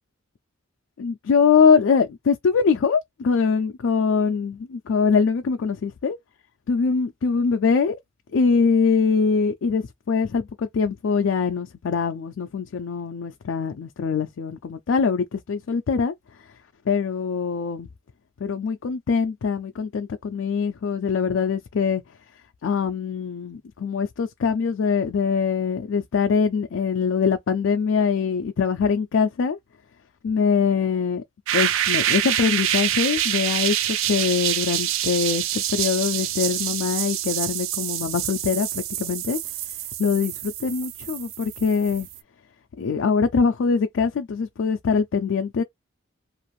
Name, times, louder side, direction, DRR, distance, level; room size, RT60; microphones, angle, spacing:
voice 1, 1.0-6.2 6.7-8.0 8.3-16.1 16.9-17.9 18.4-22.0 22.6-29.6 30.2-31.2 31.5-39.4 40.0-42.1 42.8-45.6, left 5 dB, 65° left, 0.4 m, -23 dB
sound 1, 31.5-42.2, right 12 dB, 70° right, 0.3 m, -26 dB
2.5 x 2.4 x 3.0 m
head